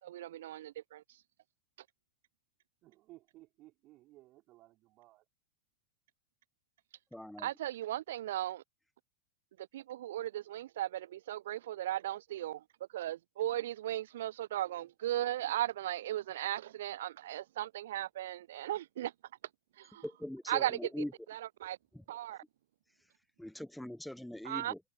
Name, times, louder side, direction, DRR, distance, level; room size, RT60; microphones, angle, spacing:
voice 1, 0.0-1.2 7.4-8.6 9.6-12.6 12.9-19.1 19.8-20.0 20.5-20.8 21.3-21.8 22.1-22.4 24.4-24.7, right 13 dB, 60° right, 0.4 m, -37 dB
voice 2, 2.8-5.3 14.6-14.9 23.8-24.2, right 18 dB, 35° right, 5.4 m, -60 dB
voice 3, 7.1-7.5 20.0-21.1 21.9-22.0 23.0-23.1 23.4-24.8, left 1 dB, ahead, 0.9 m, -42 dB
figure-of-eight pair, 90°, 0 cm